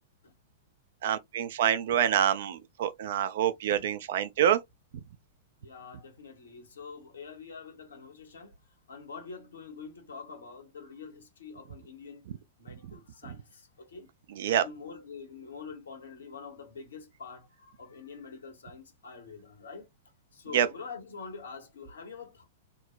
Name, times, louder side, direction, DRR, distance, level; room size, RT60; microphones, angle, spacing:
voice 1, 1.0-4.6 12.8-12.9 13.3-13.4 14.3-14.6 20.5-20.7, right 10 dB, 55° right, 0.4 m, -26 dB
voice 2, 5.6-8.5 8.9-12.3 12.6-14.1 14.5-19.9 20.3-22.4, left 5 dB, 70° left, 1.0 m, -45 dB
3.7 x 2.1 x 2.4 m
figure-of-eight pair, 100°, 0 cm